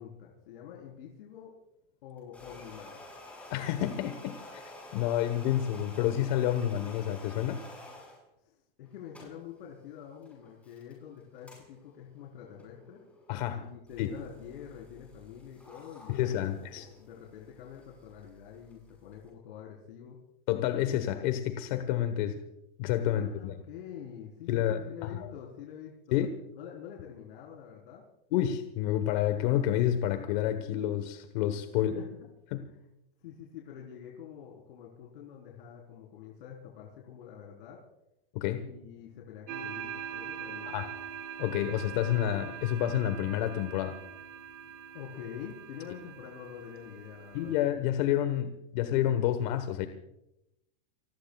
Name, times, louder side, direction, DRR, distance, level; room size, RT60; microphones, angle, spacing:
voice 1, 0.0-1.5 2.0-3.0 8.4-13.0 13.6-20.2 23.1-26.2 26.6-28.0 31.7-32.3 32.6-32.8 33.2-37.8 38.6-40.8 44.9-47.5, left 9 dB, 65° left, -2 dB, 4.1 m, -46 dB
sound 1, 2.2-8.2 8.9-19.3, left 2 dB, 5° left, 7.4 m, -51 dB
voice 2, 3.5-4.6 4.9-7.6 13.3-13.7 14.0-14.1 16.1-16.9 20.5-22.4 22.8-23.6 24.5-24.9 26.1-26.3 28.3-32.0 32.5-32.7 38.3-38.7 40.7-40.9 41.4-44.0 47.3-49.9, left 11 dB, 50° left, 9 dB, 1.3 m, -29 dB
sound 2, 39.5-47.7, right 9 dB, 55° right, 4.7 m, -43 dB
29.5 x 20.0 x 2.4 m, 0.88 s
supercardioid pair, 155°, 30 cm